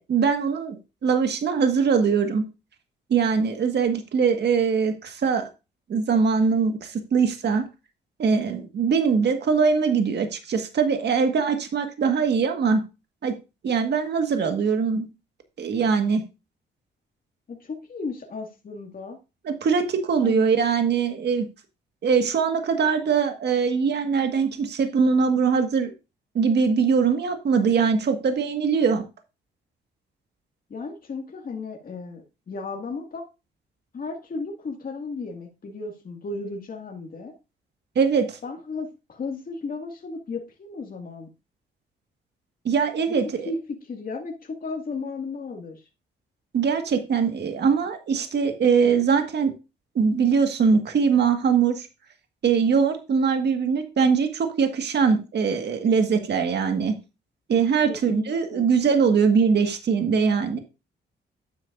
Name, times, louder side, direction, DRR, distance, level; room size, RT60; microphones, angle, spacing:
voice 1, 0.0-2.5 3.1-5.5 5.9-7.6 8.2-12.8 13.2-13.3 13.6-15.1 15.6-16.2 19.4-21.4 22.0-25.9 26.3-29.0 37.9-38.4 42.6-43.5 46.5-49.5 49.9-51.9 52.4-56.9 57.5-60.6, right 5 dB, 60° right, 6 dB, 1.7 m, -22 dB
voice 2, 17.5-19.2 20.2-20.6 30.7-33.3 33.9-37.3 38.4-41.3 43.5-45.8 57.9-58.7, left 3 dB, 45° left, 2 dB, 2.0 m, -34 dB
11.5 x 8.2 x 2.6 m, 0.28 s
cardioid pair, 75°, 20 cm